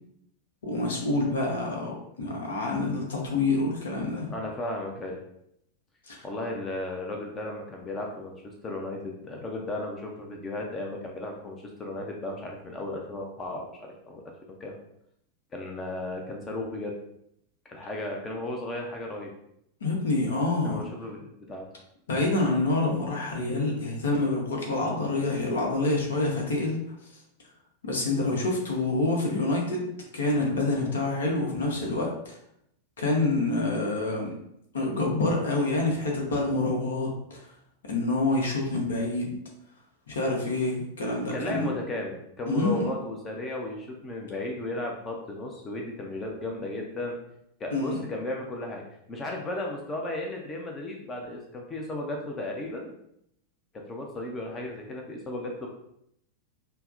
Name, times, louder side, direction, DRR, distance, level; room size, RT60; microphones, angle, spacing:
voice 1, 0.6-4.3 6.1-6.2 19.8-20.9 22.1-26.8 27.8-29.9 30.1-32.4 33.0-34.4 34.7-37.4 37.8-39.3 40.1-41.7 42.5-42.8 47.7-48.0, left 2 dB, 65° left, 0 dB, 0.8 m, -27 dB
voice 2, 4.3-5.2 6.2-14.2 14.6-14.7 15.5-16.9 17.7-19.3 20.6-21.7 41.3-47.2 47.6-48.8 49.1-52.9 53.9-55.7, left 1 dB, 20° left, 1 dB, 0.5 m, -35 dB
5.5 x 2.1 x 2.5 m, 0.75 s
figure-of-eight pair, 90°, 0 cm